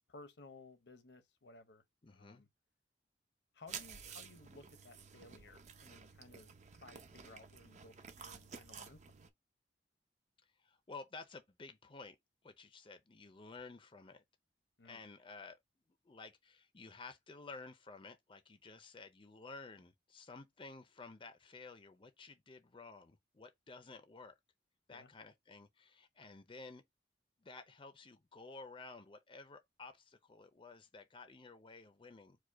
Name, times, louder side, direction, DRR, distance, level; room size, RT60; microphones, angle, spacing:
voice 1, 0.1-2.5 3.5-6.5 6.8-9.1 14.8-15.0 24.9-25.1, left 3 dB, 80° left, 0.9 m, -58 dB
voice 2, 2.0-2.4 10.6-12.2 12.4-14.2 14.8-15.6 16.0-24.3 24.9-26.8 27.4-32.4, left 3 dB, 30° left, 0.5 m, -53 dB
sound 1, 3.7-9.3, right 6 dB, 40° right, 0.6 m, -52 dB
4.8 x 2.2 x 4.6 m
head